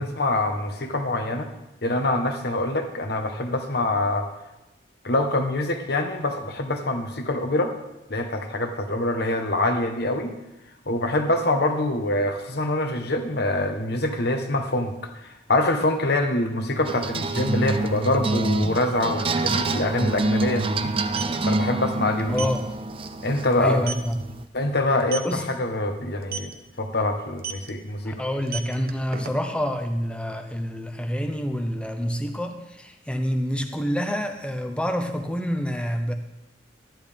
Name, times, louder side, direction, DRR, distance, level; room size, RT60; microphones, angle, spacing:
voice 1, 0.0-1.5 1.8-4.3 5.0-7.7 8.1-10.3 10.9-14.9 15.2-20.9 21.4-22.3 23.2-23.9 24.5-26.5 26.8-28.2, left 1 dB, 60° left, 5 dB, 1.2 m, -25 dB
sound 1, 16.8-24.5, right 2 dB, 30° right, 0.4 m, -27 dB
sound 2, 20.9-21.4 22.3-22.6 23.0-23.2 23.5-23.6 23.9-24.1 25.0-25.4 26.2-26.5 27.4-27.7 28.3-29.6, right 6 dB, 55° right, 0.9 m, -33 dB
voice 2, 22.3-22.7 23.6-24.2 25.2-25.4 28.0-36.1, equal, 5° left, 5 dB, 0.8 m, -27 dB
12.0 x 10.5 x 3.5 m, 0.94 s
head